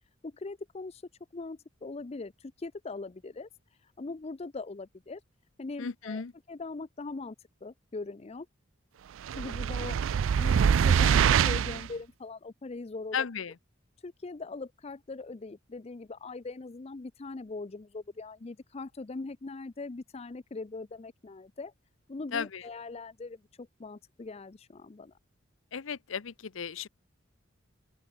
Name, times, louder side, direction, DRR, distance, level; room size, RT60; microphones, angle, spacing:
voice 1, 0.2-1.0 1.3-3.5 3.8-5.2 5.6-6.2 6.5-8.5 9.3-13.2 14.0-21.7 22.1-25.1, left 3 dB, 30° left, 0.5 m, -41 dB
voice 2, 5.8-6.3 13.1-13.5 22.3-22.6 25.7-26.9, left 6 dB, 85° left, 0.7 m, -35 dB
sound 1, 9.2-11.9, right 7 dB, 80° right, 0.4 m, -24 dB
open air
head